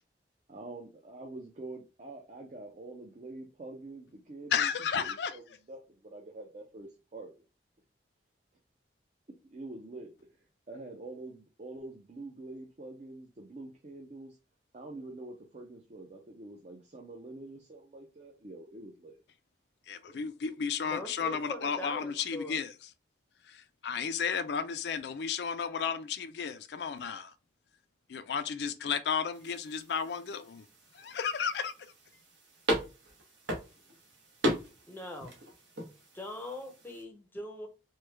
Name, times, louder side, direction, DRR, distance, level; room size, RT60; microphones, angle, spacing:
voice 1, 0.5-7.3 9.4-10.1 10.7-14.4 14.7-19.2, right 2 dB, 40° right, 0.5 m, -46 dB
voice 2, 4.5-5.4 19.9-22.7 23.5-27.3 28.1-30.7 30.9-31.7, left 6 dB, 65° left, 0.4 m, -33 dB
voice 3, 20.8-22.6 34.9-35.3 35.8-37.7, left 1 dB, 10° left, 0.6 m, -42 dB
sound 1, 29.3-37.0, equal, 80° right, 1.0 m, -38 dB
3.1 x 2.2 x 3.3 m
head